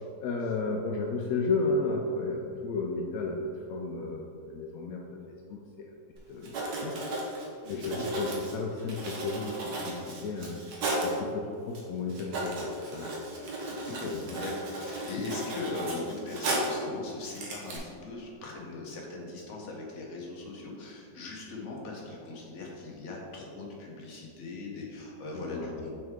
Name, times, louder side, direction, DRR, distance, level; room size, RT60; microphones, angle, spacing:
voice 1, 0.2-3.4 3.7-5.2 5.5-5.9 6.3-6.9 7.3-10.6 11.0-13.5 14.0-14.4 25.3-25.9, left 3 dB, 75° left, 0 dB, 0.8 m, -33 dB
Writing, 6.2-6.3 6.4-11.2 11.7-11.8 12.1-16.8 17.2-17.8, right 1 dB, 60° right, 1.5 m, -35 dB
voice 2, 7.6-8.2 13.6-25.9, left 3 dB, 50° left, -1 dB, 1.1 m, -40 dB
6.2 x 4.6 x 3.5 m, 2.4 s
omnidirectional pair, 2.0 m